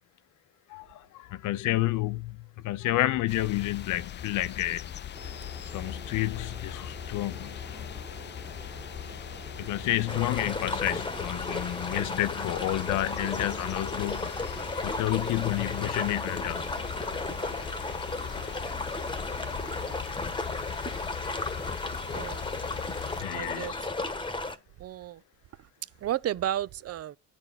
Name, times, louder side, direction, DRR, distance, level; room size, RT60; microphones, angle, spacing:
voice 1, 0.7-2.4 2.6-4.9 5.7-7.5 9.6-14.5 14.8-16.7 19.7-19.9 23.2-23.8, left 15 dB, 85° left, 0.6 m, -30 dB
sound 1, 3.3-23.2, left 10 dB, 40° left, 0.4 m, -40 dB
sound 2, 5.1-19.9, right 3 dB, 25° right, 1.8 m, -48 dB
sound 3, 10.1-24.6, left 2 dB, 15° left, 1.1 m, -34 dB
voice 2, 22.1-22.5 23.3-23.9 24.8-25.2 25.6-25.7 26.0-27.2, right 11 dB, 55° right, 0.5 m, -33 dB
10.0 x 4.3 x 4.1 m
cardioid pair, 90°, 30 cm